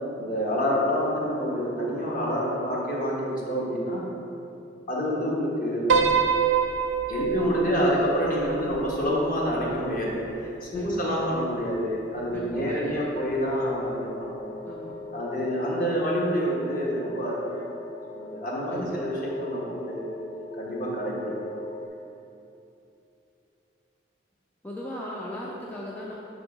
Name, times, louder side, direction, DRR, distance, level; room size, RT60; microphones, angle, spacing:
voice 1, 0.2-4.0 4.9-5.9 7.1-10.3 10.6-14.5 15.1-17.6 18.1-20.1 20.6-21.6, equal, 45° left, -5 dB, 1.2 m, -27 dB
Piano, 5.9-10.3, right 6 dB, 80° right, 0.5 m, -26 dB
voice 2, 7.5-8.1 10.7-11.3 12.3-13.3 14.6-15.0 18.7-19.0 24.6-26.2, left 1 dB, 10° left, -5 dB, 0.4 m, -38 dB
sound 1, 12.6-21.9, left 3 dB, 75° left, 0.5 m, -40 dB
6.1 x 3.6 x 4.8 m, 2.8 s
head